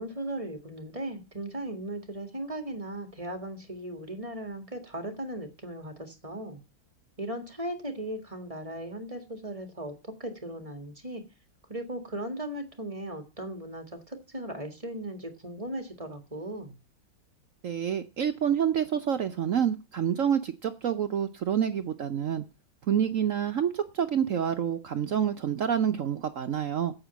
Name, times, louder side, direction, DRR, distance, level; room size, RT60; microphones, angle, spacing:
voice 1, 0.0-6.6 7.2-11.2 11.7-16.8, right 1 dB, 15° right, 6 dB, 1.8 m, -37 dB
voice 2, 17.6-22.4 22.9-26.9, right 8 dB, 70° right, 8 dB, 0.7 m, -28 dB
9.0 x 8.3 x 8.1 m, 0.30 s
omnidirectional pair, 2.3 m